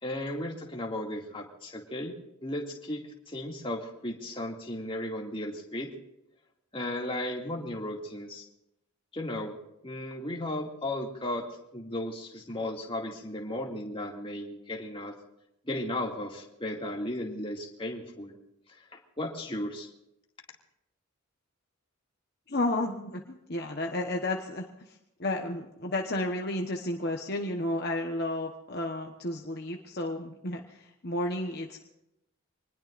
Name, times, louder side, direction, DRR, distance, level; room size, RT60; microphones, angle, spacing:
voice 1, 0.0-2.1 2.4-5.9 6.7-8.4 9.1-9.5 9.8-11.4 11.7-15.1 15.6-18.4 19.2-19.9, left 1 dB, 25° left, 0 dB, 2.4 m, -35 dB
voice 2, 22.5-31.8, left 1 dB, 45° left, 2 dB, 1.2 m, -32 dB
26.0 x 20.0 x 2.6 m, 0.87 s
head